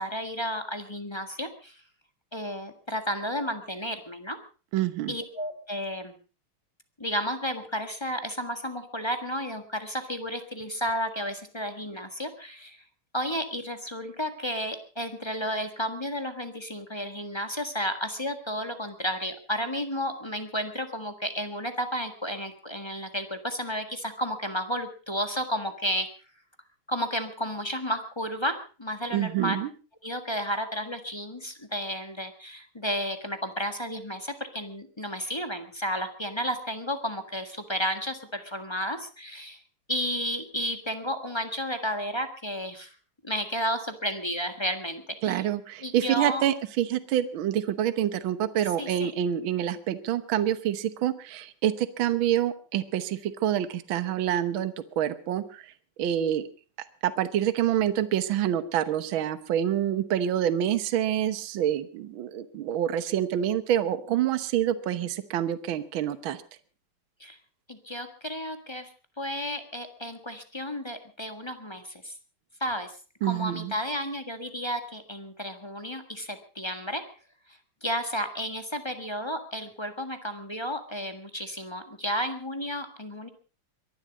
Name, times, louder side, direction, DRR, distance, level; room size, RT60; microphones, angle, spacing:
voice 1, 0.0-1.8 2.3-4.4 5.1-6.2 7.0-12.8 13.1-26.1 26.9-29.6 30.0-39.6 39.9-42.9 43.2-45.4 45.8-46.4 48.8-49.1 67.2-67.4 67.7-68.9 69.2-72.2 72.6-73.0 73.2-77.0 77.5-83.3, equal, 15° left, 8 dB, 1.4 m, -32 dB
voice 2, 4.7-5.1 29.1-29.7 45.2-55.6 56.0-56.4 57.0-66.4 73.2-73.7, right 11 dB, 70° right, 13 dB, 1.8 m, -27 dB
23.0 x 11.5 x 5.1 m, 0.37 s
omnidirectional pair, 2.4 m